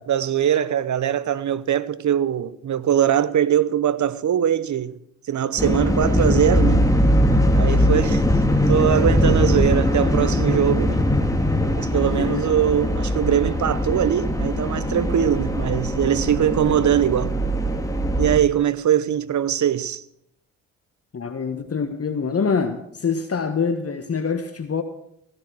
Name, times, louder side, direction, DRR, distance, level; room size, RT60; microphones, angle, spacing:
voice 1, 0.0-5.0 5.3-6.9 7.5-8.2 8.7-11.0 11.8-17.4 18.2-20.0, right 10 dB, 50° right, 1.0 m, -21 dB
sound 1, 5.6-18.4, left 1 dB, 10° left, 2.4 m, -21 dB
voice 2, 12.1-12.4 21.1-24.8, left 5 dB, 40° left, 1.4 m, -25 dB
15.5 x 12.0 x 6.3 m
hypercardioid pair, 50°, 38 cm